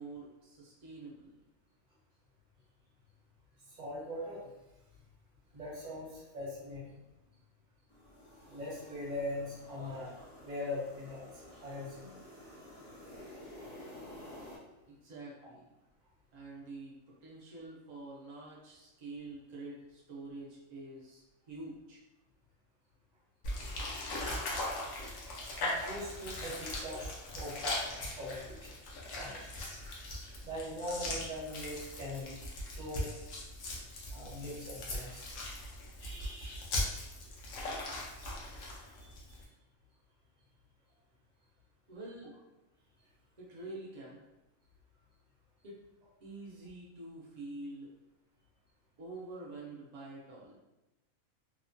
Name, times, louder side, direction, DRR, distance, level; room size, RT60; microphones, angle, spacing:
voice 1, 0.0-1.4 14.9-15.7 16.3-22.0 41.9-42.3 43.4-44.2 45.6-45.8 46.2-47.9 49.0-50.6, right 2 dB, 70° right, -4 dB, 0.4 m, -47 dB
voice 2, 3.7-4.5 5.5-7.0 8.5-12.1 25.6-28.8 29.2-29.5 30.4-32.3 32.7-33.1 34.1-35.2 36.0-36.7 39.0-39.1, left 1 dB, 40° right, -7 dB, 1.0 m, -41 dB
sound 1, 7.9-14.6, left 1 dB, 35° left, 0.8 m, -51 dB
sound 2, 23.4-39.4, left 1 dB, 80° left, 1.0 m, -39 dB
2.9 x 2.1 x 2.5 m, 0.98 s
omnidirectional pair, 1.4 m